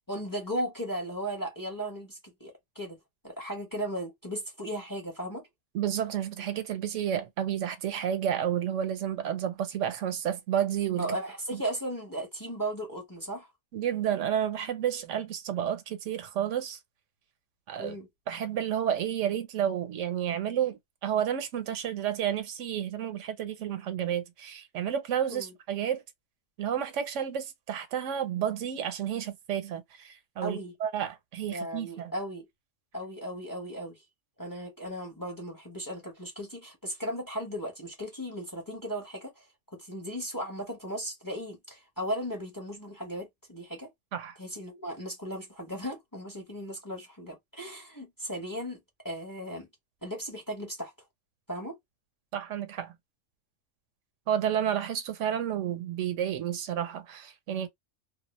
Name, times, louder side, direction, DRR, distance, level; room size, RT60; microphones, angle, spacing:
voice 1, 0.1-3.0 3.2-5.5 11.0-13.5 17.8-18.1 25.3-25.5 30.4-30.7 31.5-32.5 32.9-34.0 34.4-43.9 44.4-48.8 49.0-49.7 50.0-50.9 51.5-51.8, equal, 20° left, 0.7 m, -36 dB
voice 2, 5.7-11.2 11.5-11.6 13.7-16.8 17.7-18.0 18.3-26.0 26.6-32.1 44.1-44.4 52.3-52.9 54.3-57.7, right 9 dB, 85° right, 1.0 m, -31 dB
2.2 x 2.0 x 2.9 m
omnidirectional pair, 1.3 m